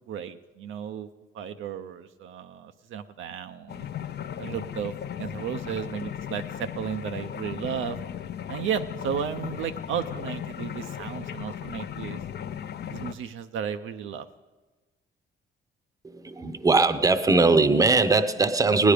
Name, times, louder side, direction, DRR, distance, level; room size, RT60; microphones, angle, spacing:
voice 1, 0.1-1.1 1.3-3.9 4.4-8.0 8.5-12.2 12.9-14.3, right 8 dB, 80° right, 8 dB, 0.6 m, -34 dB
sound 1, 3.7-13.1, left 9 dB, 55° left, 0.5 m, -36 dB
voice 2, 16.0-18.9, right 3 dB, 15° right, 11 dB, 0.7 m, -20 dB
17.0 x 10.0 x 5.0 m, 1.2 s
cardioid pair, 90°, 20 cm